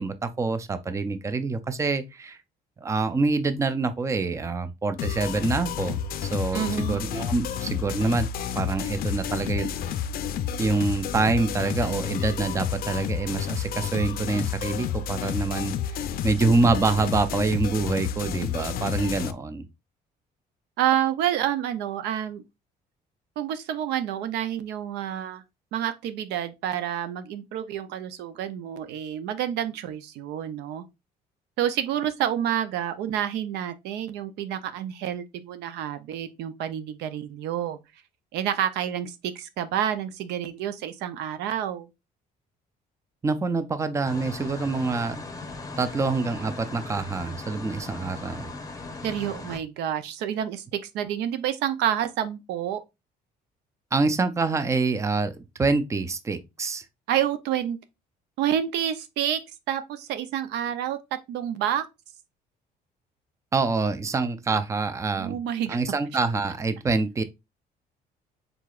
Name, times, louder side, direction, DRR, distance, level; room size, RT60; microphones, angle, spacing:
voice 1, 0.0-2.4 2.8-8.3 8.6-9.7 10.6-15.7 16.2-19.6 43.2-45.2 45.8-48.5 53.9-56.8 63.5-65.4 65.7-67.2, right 3 dB, 15° right, 0.5 m, -26 dB
sound 1, 5.0-19.3, left 8 dB, 60° left, 0.4 m, -30 dB
voice 2, 6.5-7.0 20.8-22.4 23.4-25.4 25.7-30.8 31.6-37.8 38.3-41.9 49.0-52.8 57.1-57.8 58.4-59.4 59.7-61.0 61.3-61.8 65.2-65.8, right 10 dB, 85° right, 0.6 m, -28 dB
sound 2, 44.1-49.6, left 3 dB, 20° left, 0.8 m, -38 dB
4.7 x 3.9 x 2.4 m
cardioid pair, 110°, 17 cm